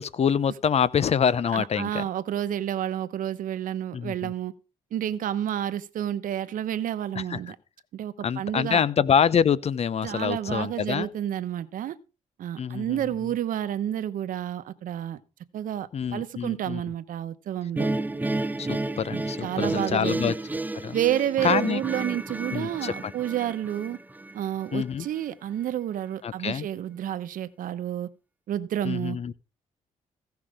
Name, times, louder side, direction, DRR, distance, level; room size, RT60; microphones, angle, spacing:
voice 1, 0.0-2.0 3.9-4.3 7.1-7.4 8.2-11.1 12.6-13.0 15.9-16.8 18.6-20.3 20.8-21.0 21.4-21.8 22.5-23.1 24.7-25.1 26.2-26.7 28.8-29.3, left 7 dB, 50° left, 0.8 m, -26 dB
voice 2, 1.5-4.5 4.9-7.6 7.9-8.8 10.0-12.0 12.4-15.2 15.5-17.9 19.1-20.3 20.9-24.0 24.3-28.1 28.5-29.2, right 11 dB, 70° right, 1.1 m, -30 dB
sound 1, 17.8-24.9, right 2 dB, 10° right, 0.7 m, -31 dB
16.0 x 5.8 x 5.0 m
cardioid pair, 75°, 14 cm